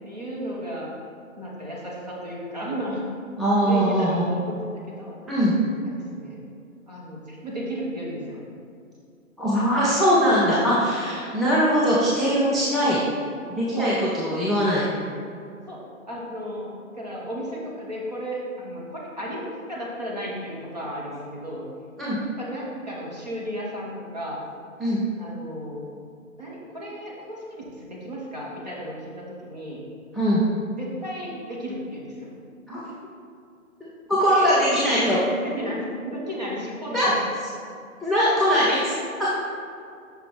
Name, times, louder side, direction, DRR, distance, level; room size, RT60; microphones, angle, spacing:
voice 1, 0.0-0.9 1.4-3.0 3.7-4.6 4.9-5.1 5.9-6.4 6.9-8.4 13.8-13.9 14.3-14.6 15.7-21.6 22.4-24.4 25.2-25.9 26.4-29.8 30.8-32.3 34.3-34.5 34.8-35.2 35.4-37.1, equal, 30° right, -4 dB, 0.9 m, -34 dB
voice 2, 3.4-4.3 5.3-5.5 9.4-13.0 13.5-14.8 22.0-22.2 24.8-25.0 30.1-30.4 32.7-32.8 34.1-35.2 36.9-37.3 38.0-38.9 39.2-39.3, equal, ahead, -9 dB, 0.4 m, -21 dB
5.6 x 4.6 x 3.7 m, 2.4 s
hypercardioid pair, 175°, 42 cm